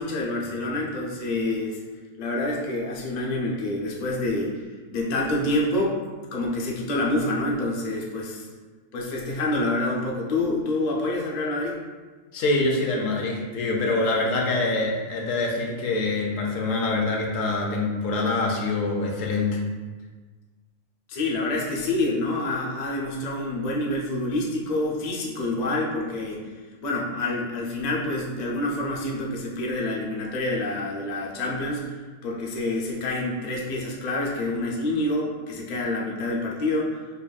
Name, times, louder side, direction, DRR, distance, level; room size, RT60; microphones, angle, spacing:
voice 1, 0.0-1.8 2.2-4.5 4.9-5.9 6.3-8.5 8.9-11.8 21.1-26.5 26.8-37.2, left 2 dB, 45° left, -3 dB, 0.6 m, -27 dB
voice 2, 12.3-19.6, left 2 dB, 85° left, -1 dB, 1.0 m, -25 dB
5.1 x 2.5 x 2.3 m, 1.4 s
omnidirectional pair, 1.3 m